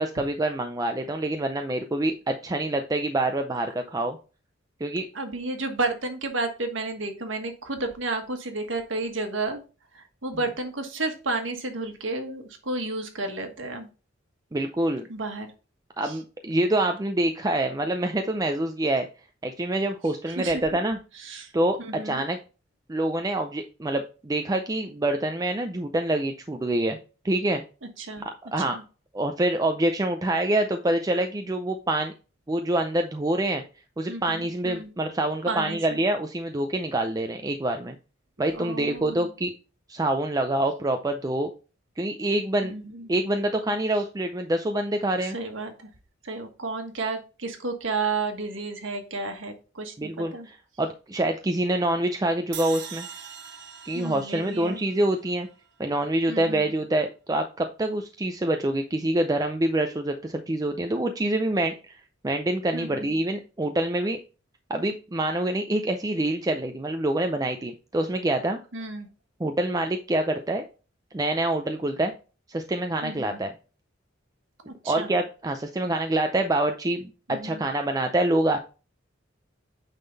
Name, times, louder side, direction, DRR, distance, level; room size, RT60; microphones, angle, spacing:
voice 1, 0.0-4.2 4.8-5.1 14.5-15.0 16.0-19.1 19.4-21.0 21.5-21.8 22.0-22.4 22.9-27.0 27.2-27.6 28.5-28.8 29.1-32.1 32.5-33.6 34.0-38.0 38.4-39.5 39.9-41.5 42.0-42.7 43.1-45.4 50.0-53.1 53.9-55.5 55.8-64.2 64.7-68.6 69.4-70.7 71.1-72.1 72.5-73.5 74.8-78.6, right 1 dB, 20° right, 5 dB, 0.5 m, -26 dB
voice 2, 5.1-9.6 9.9-13.9 15.1-15.5 16.0-16.2 20.3-20.8 21.2-21.5 21.8-22.2 28.0-28.3 28.6-28.8 34.1-34.9 35.5-36.0 38.5-39.3 42.6-43.1 45.2-45.9 46.2-50.5 53.9-54.9 56.3-56.7 62.7-63.2 68.7-69.1 73.0-73.4 74.6-75.1 77.3-77.6, right 3 dB, 80° right, 5 dB, 1.5 m, -32 dB
sound 1, 52.5-55.7, right 8 dB, 65° right, 1.0 m, -42 dB
9.0 x 3.8 x 4.0 m, 0.34 s
head